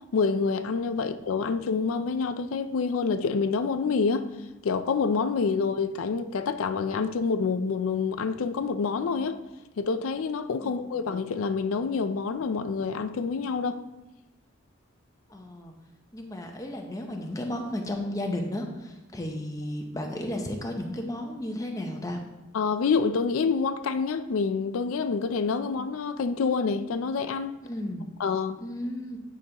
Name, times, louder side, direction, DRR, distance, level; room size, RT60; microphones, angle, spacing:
voice 1, 0.1-4.3 4.6-9.4 9.8-13.8 22.5-27.5 28.2-28.6, left 5 dB, 90° left, 0.4 m, -27 dB
voice 2, 15.3-15.7 16.1-22.2 27.6-28.1 28.6-29.2, left 1 dB, 15° left, 0.7 m, -33 dB
9.7 x 5.1 x 2.9 m
head